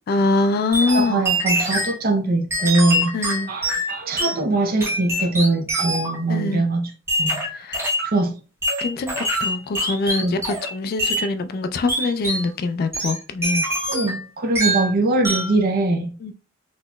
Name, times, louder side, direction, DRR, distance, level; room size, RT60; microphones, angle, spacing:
voice 1, 0.1-1.3 3.1-3.5 6.3-6.6 7.5-7.8 8.8-13.6 16.2-16.3, left 3 dB, 50° left, 0.3 m, -23 dB
sound 1, 0.7-2.0 2.5-4.4 4.8-6.2 7.1-8.1 8.6-10.7 11.0-11.3 11.9-12.5 12.9-14.2 14.5-14.9 15.2-15.6, right 1 dB, 15° right, 1.0 m, -24 dB
voice 2, 0.9-3.1 3.5-6.9 7.2-7.4 8.0-8.3 10.2-10.4 13.9-16.1, right 2 dB, 45° right, 0.6 m, -22 dB
4.1 x 2.9 x 2.2 m
head